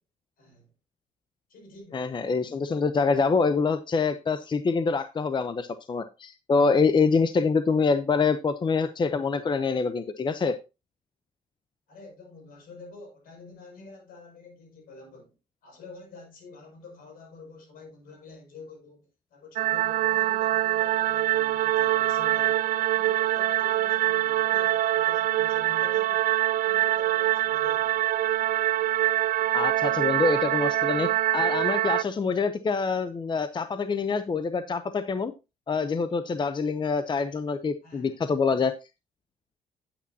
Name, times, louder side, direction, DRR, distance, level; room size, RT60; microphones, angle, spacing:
voice 1, 0.4-0.7 1.5-2.1 11.9-15.3 15.6-22.7 22.9-26.4 26.6-28.1 37.8-38.2, left 3 dB, 75° left, 5.9 m, -48 dB
voice 2, 1.9-10.6 29.5-35.3 35.7-38.7, left 4 dB, 30° left, 0.7 m, -25 dB
sound 1, 19.6-32.0, right 14 dB, 65° right, 0.4 m, -24 dB
9.7 x 8.6 x 2.8 m
cardioid pair, 80°, 15 cm